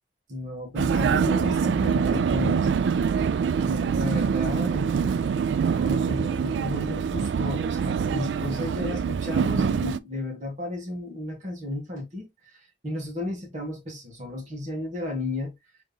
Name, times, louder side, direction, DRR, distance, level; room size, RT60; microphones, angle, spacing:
voice 1, 0.3-3.1 3.6-15.5, left 1 dB, 45° right, 1.7 m, -33 dB
Vehicle, 0.8-10.0, right 6 dB, 90° right, 0.3 m, -25 dB
5.4 x 3.5 x 2.3 m
head